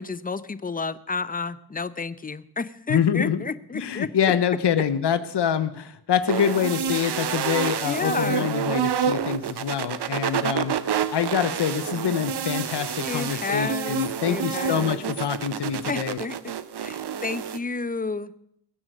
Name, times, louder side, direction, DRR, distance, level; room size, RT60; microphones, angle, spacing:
voice 1, 0.0-4.1 7.8-8.5 13.0-15.1 15.9-16.5 16.8-18.3, left 4 dB, 20° left, 15 dB, 0.6 m, -31 dB
voice 2, 2.9-3.4 3.7-16.2, left 8 dB, 85° left, 12 dB, 0.9 m, -25 dB
sound 1, 6.3-17.6, right 8 dB, 75° right, 0.8 m, -28 dB
20.5 x 7.8 x 6.3 m, 0.75 s
wide cardioid pair, 90°, 40 cm